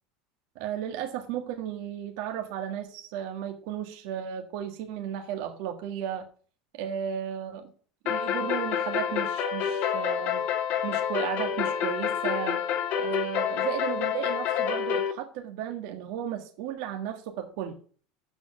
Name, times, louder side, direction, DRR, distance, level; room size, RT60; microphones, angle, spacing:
voice 1, 0.5-6.3 6.7-7.7 8.0-10.4 10.8-12.6 13.0-17.8, right 9 dB, 70° right, 5 dB, 1.6 m, -34 dB
sound 1, 8.1-15.1, left 8 dB, 55° left, 1.5 m, -28 dB
7.7 x 6.3 x 6.2 m, 0.42 s
supercardioid pair, 125°, 3 cm